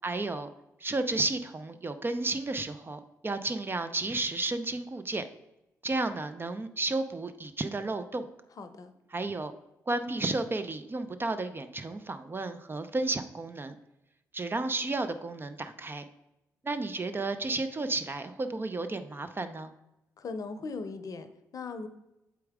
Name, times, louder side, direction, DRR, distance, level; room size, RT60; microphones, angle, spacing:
voice 1, 0.0-0.5 0.8-5.2 5.8-8.3 9.1-9.5 9.9-13.7 14.3-16.0 16.6-19.7, right 2 dB, 30° right, 10 dB, 0.6 m, -32 dB
voice 2, 8.6-8.9 20.2-21.9, left 4 dB, 50° left, 10 dB, 0.7 m, -39 dB
7.2 x 4.5 x 3.6 m, 0.93 s
hypercardioid pair, 45°, 7 cm